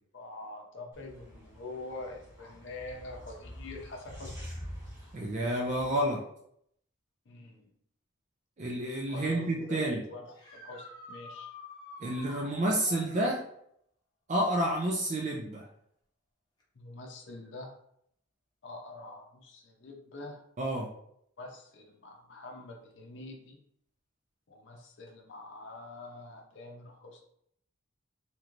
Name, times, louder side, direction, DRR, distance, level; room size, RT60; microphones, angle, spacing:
voice 1, 0.1-4.3 7.3-7.7 9.1-11.5 16.7-17.7 18.6-20.4 21.4-23.6 24.5-27.2, left 2 dB, 60° left, 1 dB, 0.6 m, -45 dB
sound 1, 0.9-6.0, equal, 15° right, 1.1 m, -46 dB
voice 2, 5.1-6.2 8.6-10.0 12.0-13.4 14.3-15.6 20.6-20.9, right 1 dB, 35° right, -1 dB, 0.4 m, -29 dB
sound 2, 10.3-13.3 16.6-16.7 18.7-18.8 25.1-25.2, left 3 dB, 20° left, 0.7 m, -48 dB
3.1 x 2.9 x 2.5 m, 0.71 s
head